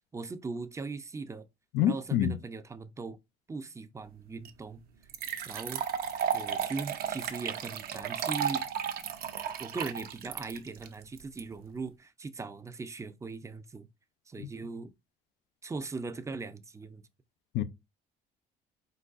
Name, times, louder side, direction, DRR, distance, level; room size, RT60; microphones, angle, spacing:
voice 1, 0.1-1.5 1.9-3.2 3.5-4.8 5.5-5.8 6.3-8.7 9.6-13.9 14.3-14.9 15.6-17.0, right 4 dB, 15° right, 0.5 m, -39 dB
voice 2, 1.7-2.4 14.4-14.5 17.5-17.6, left 10 dB, 85° left, 0.5 m, -27 dB
sound 1, 4.4-4.5 5.1-11.4, right 8 dB, 65° right, 0.7 m, -34 dB
4.5 x 4.0 x 2.4 m
cardioid pair, 110°, 17 cm